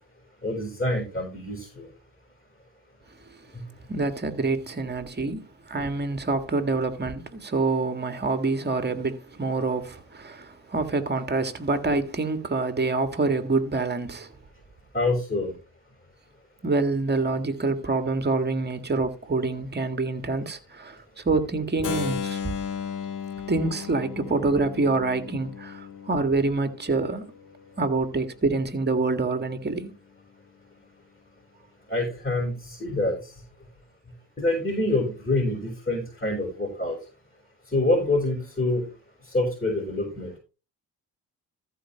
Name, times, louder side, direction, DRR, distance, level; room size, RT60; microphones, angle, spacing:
voice 1, 0.4-1.9 14.9-15.5 31.9-33.1 34.4-37.0 37.7-38.8 39.3-40.4, left 2 dB, 20° left, 5.6 m, -26 dB
voice 2, 3.9-14.3 16.6-22.6 23.5-27.2 27.8-29.9, right 3 dB, 25° right, 1.9 m, -26 dB
Keyboard (musical), 21.8-27.7, left 7 dB, 55° left, 1.7 m, -35 dB
14.0 x 4.9 x 4.3 m
supercardioid pair, 70°, 38 cm